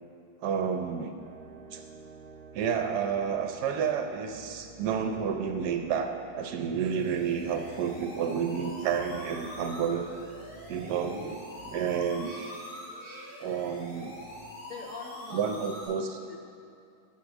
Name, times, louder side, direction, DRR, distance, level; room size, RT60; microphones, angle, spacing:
voice 1, 0.4-1.1 1.7-1.8 2.5-10.1 10.7-12.3 13.4-14.2 15.3-16.2, right 7 dB, 70° right, 6 dB, 1.0 m, -30 dB
sound 1, 1.2-14.5, right 3 dB, 45° right, 1.0 m, -50 dB
sound 2, 6.9-15.9, left 1 dB, 35° left, 2.4 m, -44 dB
voice 2, 14.7-16.4, left 4 dB, 65° left, 0 dB, 0.8 m, -45 dB
10.0 x 4.8 x 7.2 m, 2.5 s
omnidirectional pair, 2.0 m